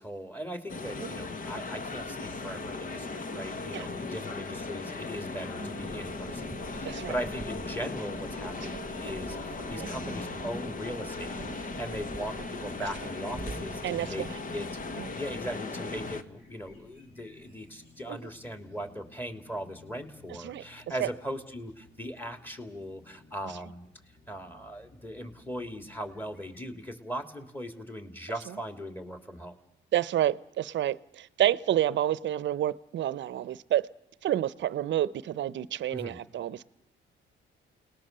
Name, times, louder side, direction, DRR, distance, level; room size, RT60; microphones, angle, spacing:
voice 1, 0.0-14.3 14.5-14.7 15.1-23.9 24.3-29.6 35.9-36.2, equal, 10° left, 3.1 m, -39 dB
sound 1, 0.7-16.2, left 3 dB, 45° left, 1.5 m, -38 dB
sound 2, 5.6-15.0, right 4 dB, 25° right, 1.3 m, -45 dB
sound 3, 10.9-26.6, left 3 dB, 60° left, 7.4 m, -56 dB
voice 2, 13.8-14.4 14.9-15.1 18.1-18.3 20.4-20.6 21.0-21.1 29.9-33.9 34.2-36.7, right 12 dB, 65° right, 0.8 m, -29 dB
29.5 x 19.5 x 6.8 m
cardioid pair, 90°, 20 cm